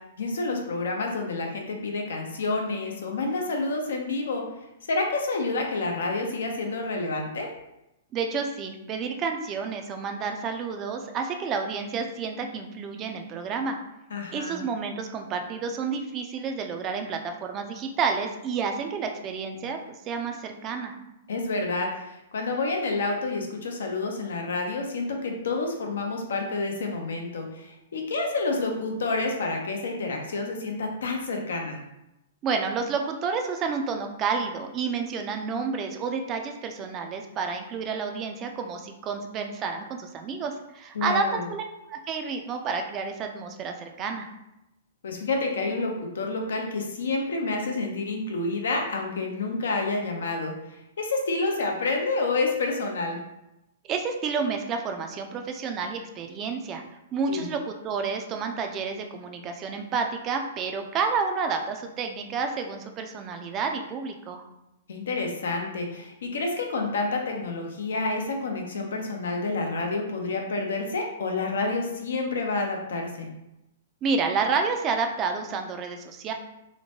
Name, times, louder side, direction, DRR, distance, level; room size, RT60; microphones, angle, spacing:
voice 1, 0.2-4.4 4.9-7.5 14.1-14.7 21.3-31.8 40.9-41.5 45.0-53.2 57.3-57.5 64.9-73.3, left 3 dB, 80° left, 2 dB, 0.6 m, -29 dB
voice 2, 8.1-13.8 14.3-19.8 20.0-20.9 32.4-41.6 41.9-44.3 53.9-56.8 57.1-64.4 74.0-76.3, right 5 dB, 25° right, 4 dB, 0.3 m, -30 dB
2.9 x 2.1 x 2.8 m, 0.89 s
hypercardioid pair, 145°, 0 cm